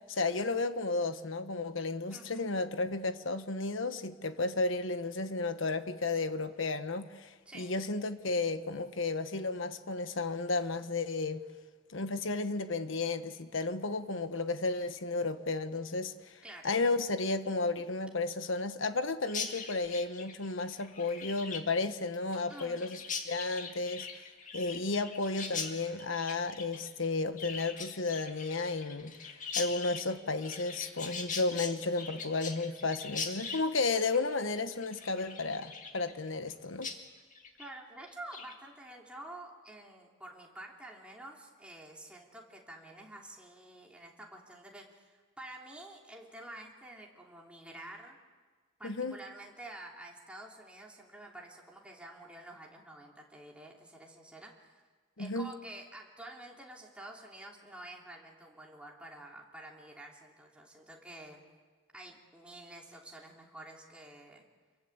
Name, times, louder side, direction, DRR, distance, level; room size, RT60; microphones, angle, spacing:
voice 1, 0.1-11.4 11.9-23.0 23.3-24.1 24.5-36.9 48.8-49.2 55.2-55.5, left 3 dB, 65° left, 1.3 m, -33 dB
voice 2, 2.1-2.5 7.4-7.7 16.4-16.7 22.5-22.8 37.6-48.2 48.8-54.8 55.2-61.4 61.9-64.5, right 1 dB, 5° right, 3.3 m, -49 dB
Chirp tweet, 19.3-36.5 36.8-37.0 37.3-37.7 38.1-38.5, left 5 dB, 40° left, 2.0 m, -42 dB
26.5 x 23.0 x 8.2 m
head